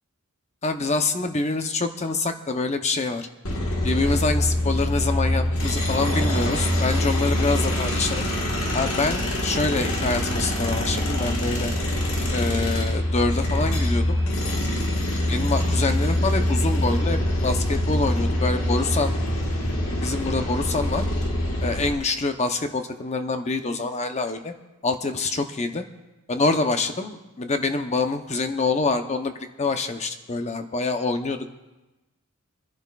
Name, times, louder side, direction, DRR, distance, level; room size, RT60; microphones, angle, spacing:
voice 1, 0.6-3.3 3.8-8.2 8.7-11.7 12.3-14.2 15.3-19.1 19.9-21.0 21.6-24.5 24.8-25.8 26.3-29.3 29.6-31.5, left 3 dB, 30° left, 7 dB, 0.8 m, -26 dB
sound 1, 3.4-21.9, left 1 dB, 65° left, 1.6 m, -24 dB
26.5 x 10.5 x 2.4 m, 1.1 s
head